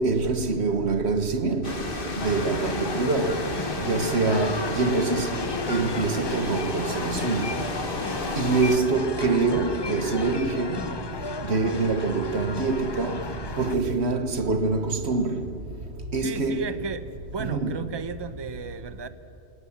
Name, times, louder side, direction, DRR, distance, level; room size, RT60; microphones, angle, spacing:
voice 1, 0.0-1.8 2.2-3.4 3.8-5.3 5.7-7.6 8.4-10.8 11.5-13.2 13.6-15.4 16.1-16.6 17.4-17.9, right 3 dB, 75° right, 1.5 m, -25 dB
sound 1, 1.6-8.8, left 2 dB, 55° left, 2.1 m, -33 dB
sound 2, 2.2-13.8, left 4 dB, 30° left, 0.6 m, -34 dB
voice 2, 16.2-17.1 17.3-19.1, right 3 dB, 25° right, 0.9 m, -34 dB
28.0 x 18.0 x 7.2 m
omnidirectional pair, 1.1 m